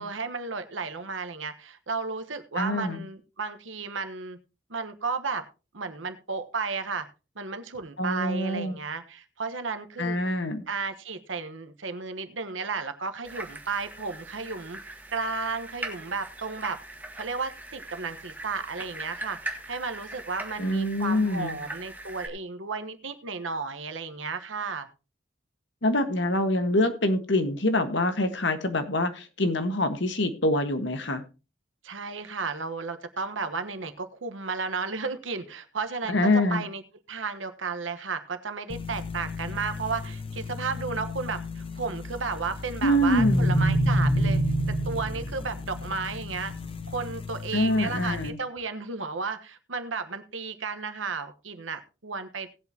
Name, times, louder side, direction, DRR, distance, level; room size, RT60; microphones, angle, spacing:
voice 1, 0.0-4.4 4.7-5.4 5.7-7.1 7.3-10.2 10.7-16.8 17.1-24.9 31.8-36.8 37.1-44.4 44.7-46.5 46.9-52.5, right 4 dB, 90° right, 9 dB, 1.3 m, -33 dB
voice 2, 2.6-3.0 8.0-8.8 10.0-10.6 20.6-21.6 25.8-31.2 36.1-36.6 42.8-43.5 47.5-48.4, left 1 dB, 70° left, 8 dB, 1.5 m, -25 dB
sound 1, 13.2-22.3, right 2 dB, 10° right, 1.6 m, -41 dB
sound 2, 38.7-48.3, equal, 30° left, 1.0 m, -29 dB
18.5 x 8.3 x 2.9 m, 0.31 s
head